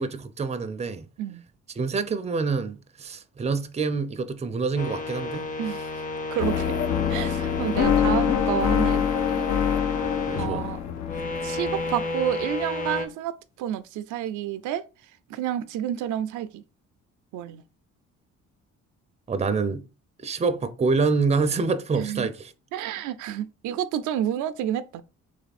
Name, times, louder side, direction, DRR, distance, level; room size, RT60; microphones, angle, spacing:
voice 1, 0.0-1.1 1.8-5.4 10.3-10.7 19.3-19.8 20.2-22.5, right 4 dB, 20° right, 0.5 m, -26 dB
sound 1, 4.8-10.5 10.9-13.1, left 2 dB, 25° left, 0.8 m, -32 dB
voice 2, 5.6-5.9 6.3-6.7 7.1-9.1 9.3-9.4 10.3-10.8 11.4-14.9 15.3-16.6 17.3-17.6 22.0-22.3 22.7-25.0, right 11 dB, 85° right, 0.5 m, -29 dB
sound 2, 6.4-12.5, left 8 dB, 65° left, 0.7 m, -25 dB
3.3 x 3.0 x 4.1 m
cardioid pair, 90°, 30 cm